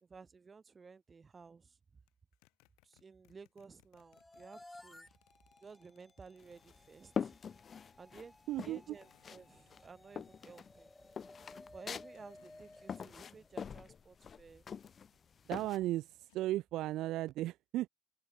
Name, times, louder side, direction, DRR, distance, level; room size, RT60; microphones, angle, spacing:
voice 1, 0.0-2.0 2.8-5.1 5.6-7.4 8.0-10.9 11.7-14.6, right 5 dB, 25° right, 2.5 m, -55 dB
sound 1, 2.1-7.1 9.0-9.8 12.1-12.9 15.6-16.5, left 27 dB, 80° left, 7.6 m, -71 dB
sound 2, 4.0-14.1, left 1 dB, 10° left, 0.9 m, -59 dB
sound 3, 6.4-8.3 8.6-9.4 9.7-15.8, left 7 dB, 35° left, 0.7 m, -43 dB
voice 2, 8.5-9.0 15.5-17.9, right 15 dB, 65° right, 0.7 m, -36 dB
open air
cardioid pair, 115°, 0 cm